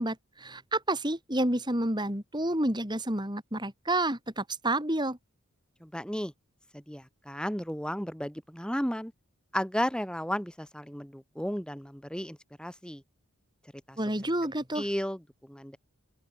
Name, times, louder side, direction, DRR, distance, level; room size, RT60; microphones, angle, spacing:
voice 1, 0.0-5.2 14.0-14.9, right 1 dB, 20° right, 5.1 m, -29 dB
voice 2, 5.8-6.3 6.7-9.1 9.5-13.0 13.9-14.0 14.7-15.8, equal, 5° left, 3.6 m, -34 dB
open air
head